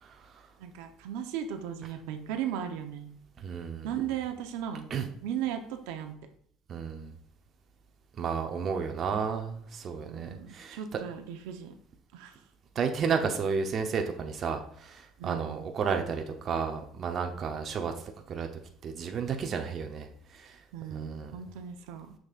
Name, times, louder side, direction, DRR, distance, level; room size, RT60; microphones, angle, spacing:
voice 1, 0.0-0.5 3.4-3.9 4.9-5.0 6.7-7.1 8.2-10.8 12.7-17.9 18.3-18.5 18.8-20.6 20.9-21.3, right 6 dB, 40° right, 4 dB, 0.8 m, -32 dB
voice 2, 0.6-3.1 3.8-6.1 10.0-11.7 12.1-12.4 15.2-15.7 20.7-22.1, right 9 dB, 85° right, 6 dB, 0.8 m, -37 dB
6.8 x 6.2 x 2.5 m, 0.64 s
cardioid pair, 130°, 0 cm